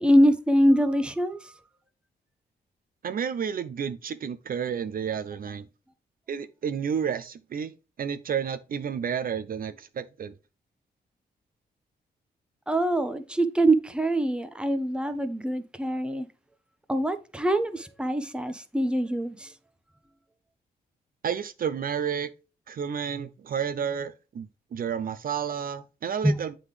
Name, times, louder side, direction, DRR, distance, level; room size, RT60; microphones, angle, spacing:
voice 1, 0.0-1.4 12.7-16.3 16.9-19.5 26.2-26.4, right 1 dB, 5° right, 0.9 m, -24 dB
voice 2, 3.0-5.7 6.3-7.7 8.0-10.3 21.2-22.3 22.7-24.5 24.7-26.6, right 7 dB, 55° right, 0.6 m, -31 dB
7.9 x 3.8 x 3.3 m
cardioid pair, 75°, 17 cm